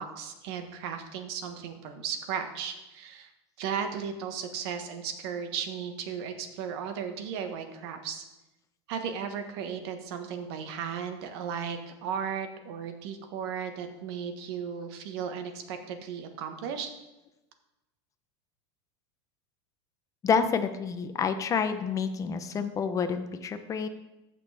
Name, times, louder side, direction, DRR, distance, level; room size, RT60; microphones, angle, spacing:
voice 1, 0.0-3.3 3.6-8.2 8.9-16.9, right 7 dB, 65° right, 7 dB, 1.3 m, -35 dB
voice 2, 20.2-23.9, left 6 dB, 20° left, 9 dB, 0.7 m, -28 dB
14.5 x 6.1 x 3.4 m, 0.97 s
supercardioid pair, 140°, 14 cm